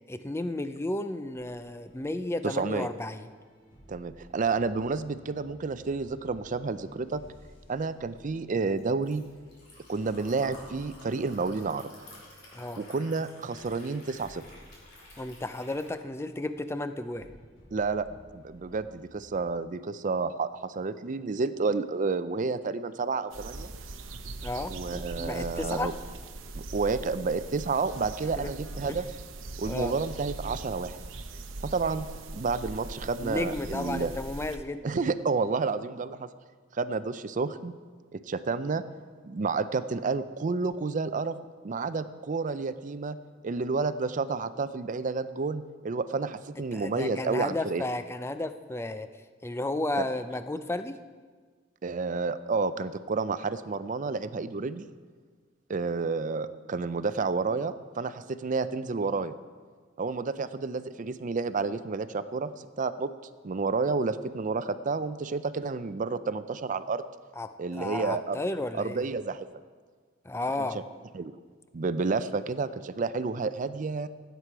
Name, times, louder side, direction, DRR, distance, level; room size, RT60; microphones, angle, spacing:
voice 1, 0.1-3.3 12.5-12.8 15.2-17.3 24.4-25.9 28.4-28.5 28.8-29.0 29.7-30.0 33.2-34.9 46.7-49.1 49.4-51.0 67.4-69.1 70.2-70.9, left 2 dB, 15° left, 10 dB, 0.4 m, -33 dB
sound 1, 1.3-19.5, equal, 80° left, 3.9 m, -56 dB
voice 2, 2.4-2.9 3.9-7.2 7.7-9.2 9.9-11.9 12.8-14.4 17.7-18.1 18.3-23.7 24.7-25.9 26.5-29.1 29.6-31.0 31.6-32.1 32.3-34.1 34.8-36.3 36.7-37.7 38.1-38.8 39.2-41.4 41.6-43.2 43.4-47.8 50.0-50.1 51.8-54.9 55.7-59.3 60.0-63.1 63.4-67.1 67.6-68.4 68.7-69.5 70.6-70.7 71.1-71.3 71.7-74.1, right 4 dB, 40° right, 13 dB, 0.5 m, -30 dB
Liquid, 7.7-15.9, left 1 dB, 60° left, 3.6 m, -52 dB
sound 2, 23.3-34.6, right 2 dB, 90° right, 0.8 m, -41 dB
15.5 x 8.2 x 4.6 m, 1.6 s
head